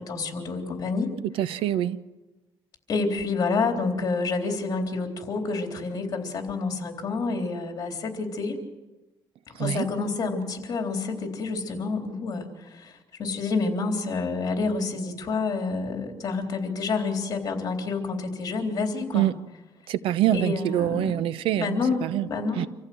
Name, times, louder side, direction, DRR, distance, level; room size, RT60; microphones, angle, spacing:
voice 1, 0.1-1.1 2.9-7.9 8.4-8.5 9.6-10.4 10.7-11.0 11.4-12.4 13.2-18.0 18.4-19.2 20.3-21.0 21.6-22.6, left 4 dB, 40° left, 3.6 m, -28 dB
voice 2, 1.4-2.0 9.5-9.9 19.1-19.4 19.9-22.3 22.6-22.7, right 12 dB, 80° right, 0.8 m, -25 dB
26.0 x 15.0 x 7.8 m
cardioid pair, 130°, 9 cm